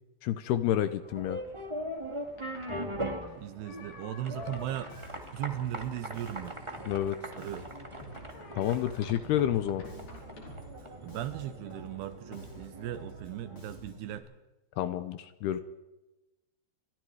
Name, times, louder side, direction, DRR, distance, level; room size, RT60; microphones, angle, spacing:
voice 1, 0.2-1.4 6.9-7.2 8.6-9.8 14.8-15.6, left 11 dB, 75° left, 12 dB, 2.6 m, -29 dB
sound 1, 1.0-13.8, equal, 30° right, 0.5 m, -41 dB
sound 2, 1.9-11.5, left 3 dB, 55° left, 6.7 m, -53 dB
voice 2, 3.4-4.9 5.3-6.6 7.3-7.7 11.0-14.3, right 12 dB, 75° right, 12 dB, 2.7 m, -37 dB
Bass guitar, 4.3-14.2, right 1 dB, 30° left, 6.1 m, -49 dB
28.5 x 23.5 x 4.9 m, 1.0 s
omnidirectional pair, 5.2 m